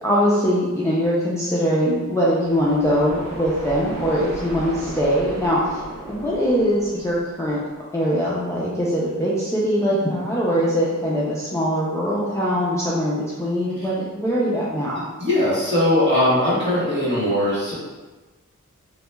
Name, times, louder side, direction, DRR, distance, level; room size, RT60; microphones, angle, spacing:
voice 1, 0.0-5.8 6.1-7.6 7.9-15.1, equal, 10° left, -7 dB, 0.4 m, -22 dB
sound 1, 2.4-8.2, right 2 dB, 85° right, 0.5 m, -36 dB
voice 2, 15.2-17.7, left 1 dB, 35° right, -10 dB, 1.3 m, -20 dB
2.8 x 2.2 x 2.2 m, 1.2 s
wide cardioid pair, 45°, 31 cm